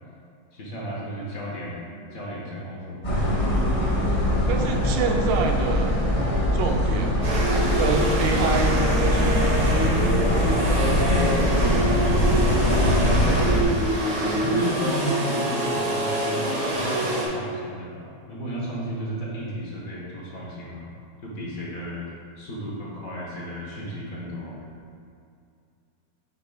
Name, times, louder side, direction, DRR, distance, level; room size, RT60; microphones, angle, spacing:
voice 1, 0.5-1.8 2.1-3.5 10.8-12.3 12.6-13.4 14.2-20.9 21.2-22.1 22.4-24.7, equal, 55° left, -4 dB, 1.2 m, -33 dB
sound 1, 3.0-13.6, left 1 dB, 30° left, 1.0 m, -22 dB
voice 2, 4.5-5.9 6.5-7.1 7.8-9.3, right 5 dB, 80° right, 3 dB, 1.3 m, -26 dB
sound 2, 7.2-17.3, right 1 dB, 50° right, 1.3 m, -25 dB
8.0 x 5.2 x 2.3 m, 2.4 s
omnidirectional pair, 2.0 m